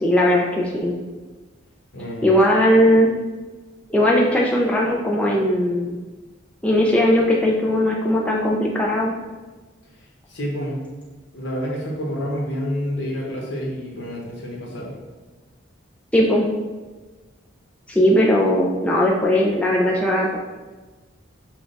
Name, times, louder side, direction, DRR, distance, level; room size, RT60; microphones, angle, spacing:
voice 1, 0.0-0.9 2.2-3.1 3.9-5.9 6.6-9.1 16.1-16.5 17.9-20.4, equal, 5° left, -3 dB, 0.4 m, -18 dB
voice 2, 1.9-2.3 10.3-10.8 11.3-15.0, equal, 65° left, -3 dB, 1.2 m, -28 dB
6.0 x 2.3 x 3.9 m, 1.3 s
head